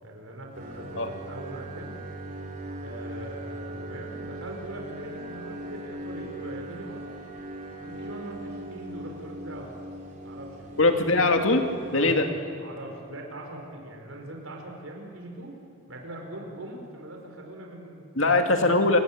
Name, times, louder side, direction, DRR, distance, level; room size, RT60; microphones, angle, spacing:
voice 1, 0.0-1.9 2.8-7.1 7.8-9.8 10.2-10.8 11.9-12.2 12.6-15.6 15.9-18.3, right 1 dB, 75° right, 1 dB, 4.6 m, -41 dB
sound 1, 0.5-12.2, right 1 dB, 40° right, 3.6 m, -39 dB
voice 2, 10.8-11.7 11.9-12.3 18.2-19.0, left 2 dB, 70° left, 5 dB, 2.3 m, -21 dB
29.0 x 18.0 x 8.7 m, 2.6 s
head